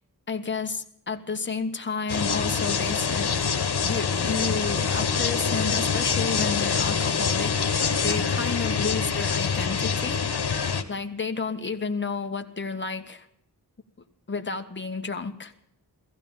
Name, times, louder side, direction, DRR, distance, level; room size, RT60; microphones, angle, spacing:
voice 1, 0.3-3.3 3.8-7.8 8.0-10.2 10.9-13.3 14.3-15.5, left 4 dB, 30° left, 5 dB, 1.3 m, -31 dB
sound 1, 2.1-10.8, left 6 dB, 75° left, 1.4 m, -25 dB
16.0 x 15.0 x 5.6 m, 0.71 s
wide cardioid pair, 70°, 39 cm